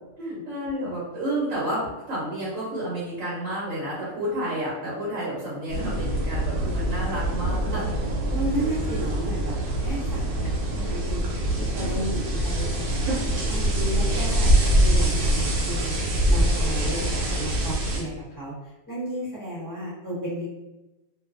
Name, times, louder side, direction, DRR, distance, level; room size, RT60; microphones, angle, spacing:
voice 1, 0.5-7.9 8.3-8.8, right 1 dB, 65° right, -7 dB, 1.0 m, -30 dB
sound 1, 5.7-18.0, right 1 dB, 85° right, 1.2 m, -24 dB
voice 2, 8.3-10.4 10.7-13.2 13.5-20.5, right 1 dB, 20° left, -8 dB, 0.7 m, -33 dB
2.4 x 2.4 x 2.4 m, 1.0 s
omnidirectional pair, 1.5 m